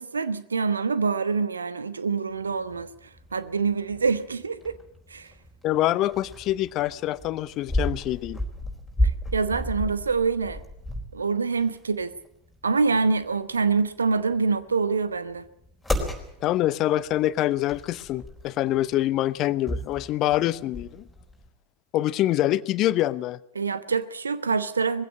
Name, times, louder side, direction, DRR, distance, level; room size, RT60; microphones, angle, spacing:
voice 1, 0.0-2.9 3.3-4.8 5.1-5.3 9.3-10.6 11.1-12.1 12.6-15.4 23.5-25.0, right 4 dB, 75° right, 1.2 m, -25 dB
sound 1, 2.4-21.5, equal, ahead, 4.3 m, -34 dB
voice 2, 5.6-8.4 16.4-21.0 21.9-23.4, left 14 dB, 35° left, 0.7 m, -25 dB
21.0 x 16.0 x 8.7 m
figure-of-eight pair, 90°, 0 cm